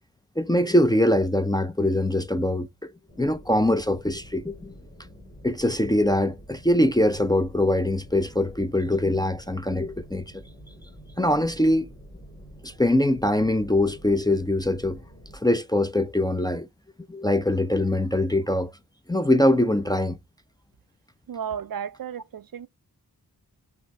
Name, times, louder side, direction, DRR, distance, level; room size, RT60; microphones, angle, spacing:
voice 1, 0.4-2.7 3.2-4.7 5.4-10.4 11.2-11.9 12.6-15.0 15.3-16.7 17.1-18.7 19.1-20.2, left 1 dB, 10° left, 0.4 m, -23 dB
sound 1, 3.1-15.4, equal, 45° left, 2.0 m, -47 dB
voice 2, 21.3-22.7, right 8 dB, 60° right, 0.5 m, -33 dB
5.7 x 2.6 x 3.3 m
wide cardioid pair, 55°, 39 cm